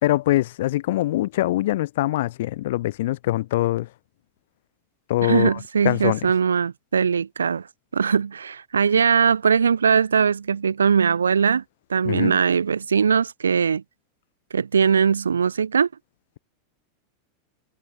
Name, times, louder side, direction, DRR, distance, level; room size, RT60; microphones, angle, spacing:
voice 1, 0.0-3.9 5.1-5.6 5.8-6.2 12.0-12.4, left 16 dB, 55° left, 0.9 m, -23 dB
voice 2, 5.2-7.7 7.9-11.6 11.9-13.8 14.5-15.9, right 6 dB, 70° right, 0.7 m, -20 dB
figure-of-eight pair, 90°, 0 cm